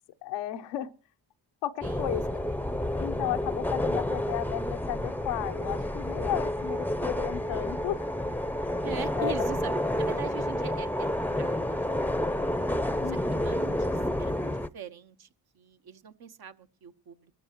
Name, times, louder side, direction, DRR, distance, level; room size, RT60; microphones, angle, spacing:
voice 1, 0.2-0.9 1.6-2.4 3.0-8.1 9.2-9.3 13.0-13.4, left 13 dB, 85° left, 0.9 m, -34 dB
sound 1, 1.8-14.7, left 1 dB, 5° left, 0.7 m, -30 dB
voice 2, 1.8-2.7 8.8-12.6 13.1-15.3 15.5-17.3, right 8 dB, 65° right, 1.2 m, -42 dB
25.0 x 12.5 x 3.0 m
supercardioid pair, 55°, 41 cm